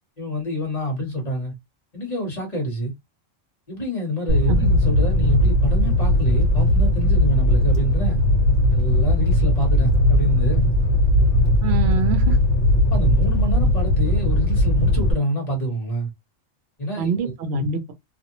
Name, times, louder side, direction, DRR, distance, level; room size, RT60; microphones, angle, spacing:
voice 1, 0.2-1.5 1.9-2.9 3.7-8.2 8.7-10.7 12.9-16.1 16.8-17.3, equal, 30° left, 1.2 m, -27 dB
Fire, 4.3-15.1, left 1 dB, 50° left, 1.0 m, -18 dB
voice 2, 11.6-12.4 17.0-17.9, right 5 dB, 60° right, 0.8 m, -25 dB
2.6 x 2.0 x 2.9 m
omnidirectional pair, 1.3 m